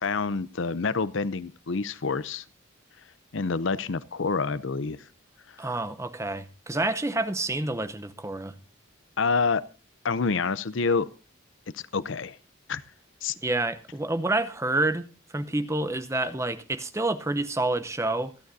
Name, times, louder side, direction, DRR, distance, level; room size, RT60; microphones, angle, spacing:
voice 1, 0.0-2.4 3.3-5.0 9.2-9.6 10.0-11.1 11.7-12.4 12.7-12.8 13.2-13.3, left 4 dB, 65° left, 0.6 m, -27 dB
voice 2, 5.6-8.6 13.3-18.3, right 2 dB, 15° right, 0.7 m, -28 dB
27.0 x 9.1 x 2.7 m
head